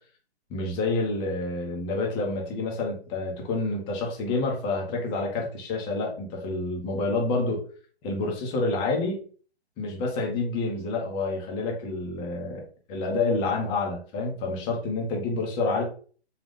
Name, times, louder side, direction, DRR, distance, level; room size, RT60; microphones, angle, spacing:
voice 1, 0.5-7.6 8.0-9.2 9.8-12.6 12.9-15.8, left 3 dB, 15° left, 0 dB, 0.7 m, -28 dB
3.9 x 2.3 x 3.6 m, 0.42 s
figure-of-eight pair, 135°, 33 cm